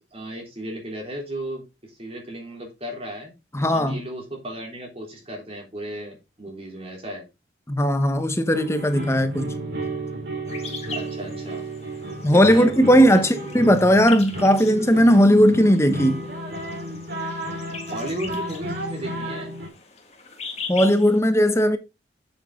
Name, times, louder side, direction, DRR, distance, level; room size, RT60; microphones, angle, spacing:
voice 1, 0.1-3.3 3.7-7.3 10.9-11.7 12.3-13.7 17.9-19.5, right 1 dB, 30° right, 3.6 m, -35 dB
voice 2, 3.5-4.0 7.7-9.5 12.2-16.2 20.7-21.8, equal, 15° left, 1.0 m, -17 dB
sound 1, 8.5-19.7, right 1 dB, 55° right, 3.9 m, -33 dB
sound 2, 10.5-21.2, left 5 dB, 35° left, 1.8 m, -40 dB
8.5 x 8.0 x 3.7 m
head